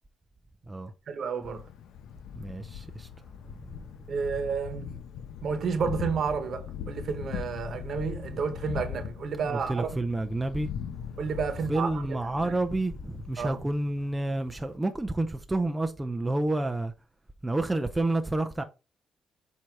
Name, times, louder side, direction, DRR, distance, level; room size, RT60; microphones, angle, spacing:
voice 1, 1.1-1.7 4.1-5.0 5.4-10.0 11.2-12.6 13.4-13.6, right 5 dB, 60° right, 1.2 m, -31 dB
Thunder, 1.4-14.8, left 8 dB, 85° left, 0.8 m, -41 dB
voice 2, 2.4-3.1 3.4-3.8 9.5-10.7 11.7-16.9 17.4-18.6, right 2 dB, 15° right, 0.6 m, -29 dB
7.6 x 2.8 x 4.7 m
cardioid pair, 90°, 0 cm